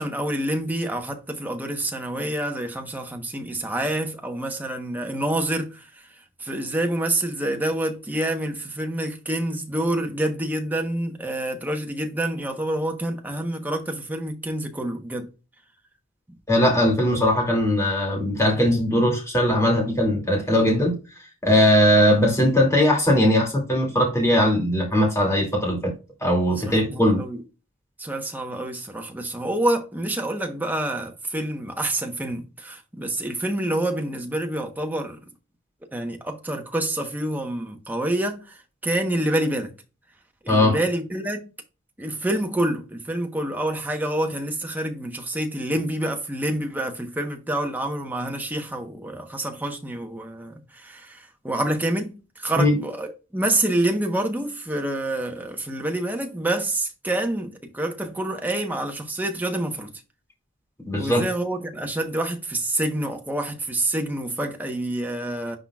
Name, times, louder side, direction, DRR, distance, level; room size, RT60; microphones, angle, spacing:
voice 1, 0.0-5.8 6.4-15.3 26.6-27.4 28.0-35.2 35.9-38.5 38.8-39.8 40.4-41.5 42.0-60.0 60.9-65.6, right 1 dB, 10° right, 1.0 m, -27 dB
voice 2, 16.5-21.0 21.4-25.9 26.2-27.2 40.5-40.8 52.6-52.8 60.9-61.2, left 1 dB, 15° left, 2.4 m, -20 dB
10.0 x 3.9 x 2.4 m
head